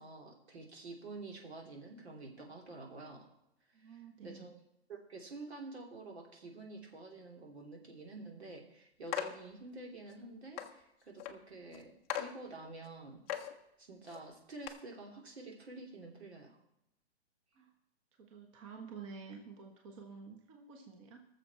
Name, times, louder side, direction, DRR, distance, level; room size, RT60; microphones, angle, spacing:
voice 1, 0.0-3.3 3.8-4.5 4.9-13.2 13.8-16.6, right 2 dB, 80° right, 1 dB, 3.2 m, -49 dB
voice 2, 3.7-4.4 17.5-17.7 18.2-21.3, right 5 dB, 30° right, 3 dB, 1.2 m, -50 dB
sound 1, 9.1-9.4 10.1-10.2 10.6-10.7 11.2-11.3 11.7-11.8 12.1-12.3 12.8-12.9 13.3-13.5 14.1-14.2 14.6-14.7, left 10 dB, 15° left, 0.5 m, -38 dB
19.0 x 7.0 x 4.3 m, 0.84 s
hypercardioid pair, 160°, 32 cm